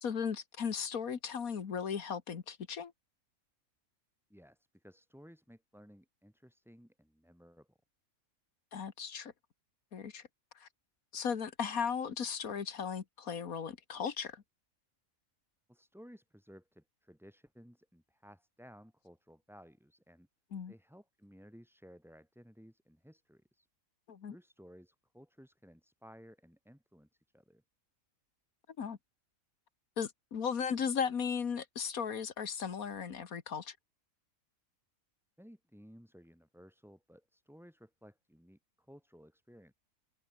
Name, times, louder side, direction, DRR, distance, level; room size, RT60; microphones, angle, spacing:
voice 1, 0.0-2.9 8.7-9.3 9.9-10.2 10.6-10.7 11.1-14.4 20.5-20.7 24.1-24.4 28.8-29.0 30.0-33.8, left 7 dB, 80° left, 2.0 m, -36 dB
voice 2, 4.3-7.8 15.7-20.3 20.7-23.7 24.3-27.6 35.4-39.7, equal, ahead, 4.2 m, -57 dB
omnidirectional pair, 1.5 m